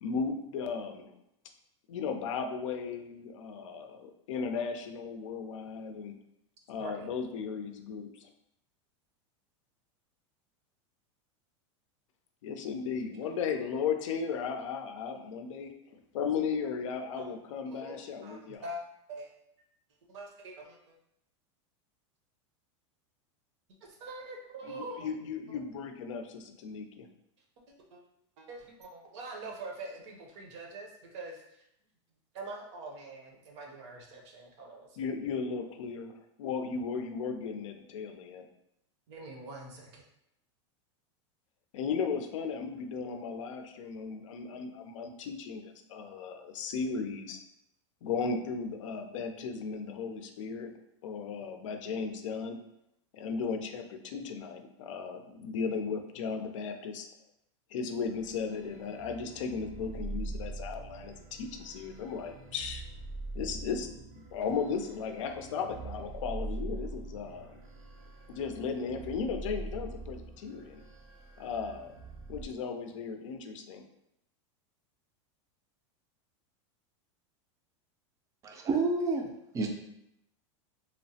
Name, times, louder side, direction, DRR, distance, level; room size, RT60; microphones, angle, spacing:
voice 1, 0.0-1.1 1.9-6.2 6.7-8.3 12.4-15.7 16.1-18.7 24.6-27.1 35.0-38.5 41.7-47.4 48.0-50.7 51.0-52.6 53.1-57.1 57.7-62.8 63.3-67.6 68.3-70.8 71.4-71.9 72.3-73.8, left 5 dB, 85° left, 6 dB, 0.4 m, -36 dB
voice 2, 6.8-7.1 17.2-17.3 17.7-18.0 18.2-18.8 19.1-19.3 20.1-21.0 23.8-25.1 25.5-25.6 27.9-28.0 28.4-31.6 32.3-35.0 39.1-40.0, right 2 dB, 65° right, 1 dB, 0.7 m, -44 dB
sound 1, 58.0-72.5, right 2 dB, 85° right, 0.9 m, -43 dB
voice 3, 78.4-79.3 79.5-79.7, right 3 dB, 20° right, 3 dB, 0.3 m, -29 dB
2.9 x 2.0 x 2.7 m, 0.79 s
supercardioid pair, 140°, 16 cm